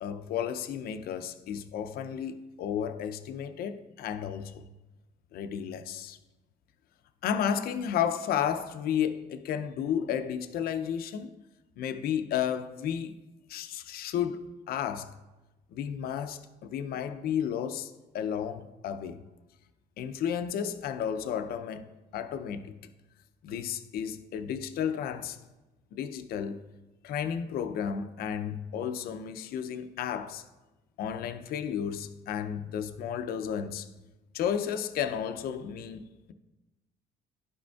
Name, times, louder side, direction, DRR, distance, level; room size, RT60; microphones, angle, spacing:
voice 1, 0.0-4.7 5.3-6.2 7.2-11.3 11.8-13.1 13.5-15.1 15.7-19.2 20.0-22.7 23.4-25.4 25.9-26.6 27.0-30.4 31.0-33.9 34.3-36.3, left 8 dB, 65° left, 0.5 m, -33 dB
11.5 x 5.0 x 2.3 m
cardioid pair, 110°, 17 cm